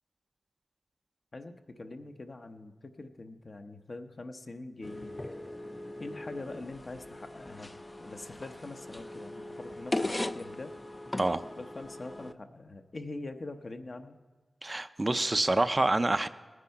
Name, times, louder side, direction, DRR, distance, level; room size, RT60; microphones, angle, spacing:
voice 1, 1.3-5.2 6.0-7.7 8.0-10.7 11.6-14.2, left 2 dB, 50° left, 6 dB, 0.8 m, -43 dB
sound 1, 4.8-12.3, left 1 dB, 25° left, 0.4 m, -39 dB
voice 2, 14.6-16.3, right 2 dB, 30° right, 11 dB, 0.5 m, -27 dB
19.0 x 9.7 x 4.7 m, 1.3 s
wide cardioid pair, 75°, 0 cm